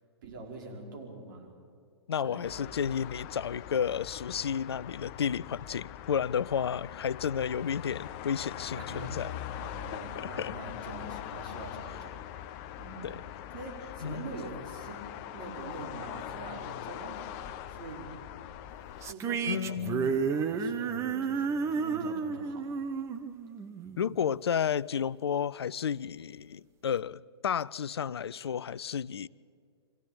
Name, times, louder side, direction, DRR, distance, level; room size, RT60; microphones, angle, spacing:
voice 1, 0.2-1.5 2.2-2.6 8.7-9.3 9.6-13.1 13.5-18.1 19.0-22.7, right 2 dB, 50° right, 5.3 m, -44 dB
voice 2, 2.1-8.9 9.1-9.3 9.9-10.5 13.0-13.2 14.0-14.3 19.5-20.1 24.0-29.3, left 8 dB, 65° left, 0.5 m, -32 dB
sound 1, 2.4-19.1, left 11 dB, 35° left, 0.7 m, -42 dB
sound 2, 19.0-24.4, right 5 dB, 20° right, 1.1 m, -32 dB
25.0 x 16.0 x 8.9 m
figure-of-eight pair, 115°, 14 cm